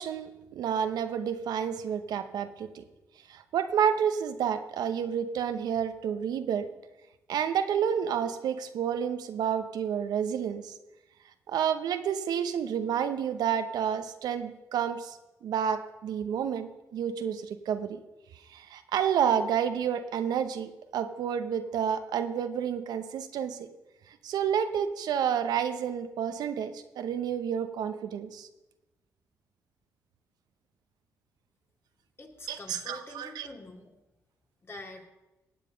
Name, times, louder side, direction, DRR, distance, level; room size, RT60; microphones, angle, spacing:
voice 1, 0.0-2.8 3.3-6.7 7.3-10.7 11.5-18.0 18.5-23.7 24.1-28.5 32.5-33.5, right 8 dB, 75° right, 9 dB, 0.9 m, -30 dB
voice 2, 32.2-33.9 34.6-35.1, left 2 dB, 35° left, 3 dB, 2.3 m, -45 dB
17.0 x 7.7 x 5.1 m, 1.0 s
supercardioid pair, 55°, 7 cm